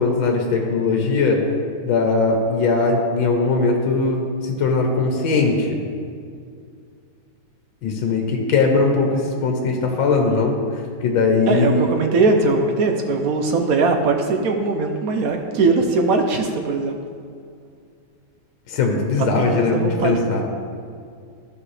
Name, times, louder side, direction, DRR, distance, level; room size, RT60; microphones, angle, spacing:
voice 1, 0.0-1.4 1.8-5.8 7.8-10.6 11.0-11.9 18.7-20.4, left 3 dB, 75° left, 2 dB, 1.7 m, -20 dB
voice 2, 11.5-17.0 19.2-20.4, right 3 dB, 70° right, 4 dB, 0.8 m, -20 dB
13.5 x 5.8 x 3.3 m, 2.2 s
omnidirectional pair, 2.2 m